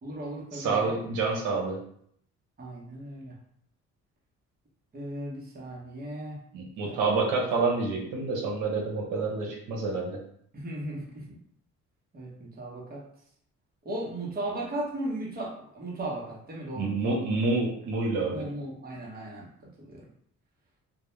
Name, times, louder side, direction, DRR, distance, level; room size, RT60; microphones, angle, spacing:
voice 1, 0.0-0.9 2.6-3.4 4.9-6.4 6.9-7.4 10.5-11.4 12.1-13.0 13.8-17.3 18.3-20.0, right 1 dB, 30° right, -3 dB, 0.9 m, -37 dB
voice 2, 0.5-1.8 6.5-10.2 16.7-18.4, right 3 dB, 90° right, -2 dB, 0.7 m, -28 dB
2.3 x 2.1 x 3.0 m, 0.67 s
cardioid pair, 90°, 30 cm